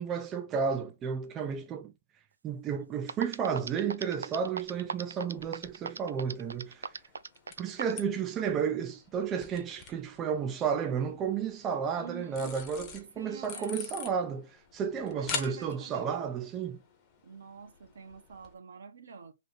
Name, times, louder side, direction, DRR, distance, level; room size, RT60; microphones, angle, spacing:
voice 1, 0.0-1.9 2.4-6.9 7.6-16.8, right 7 dB, 15° right, 0.3 m, -32 dB
sound 1, 2.8-2.9 3.1-8.0, right 5 dB, 85° right, 0.4 m, -37 dB
sound 2, 4.4-18.5, left 6 dB, 20° left, 0.8 m, -46 dB
voice 2, 12.0-12.6 13.2-14.0 15.1-16.3 17.2-19.3, right 6 dB, 65° right, 1.1 m, -47 dB
3.3 x 2.6 x 3.9 m
hypercardioid pair, 160°, 0 cm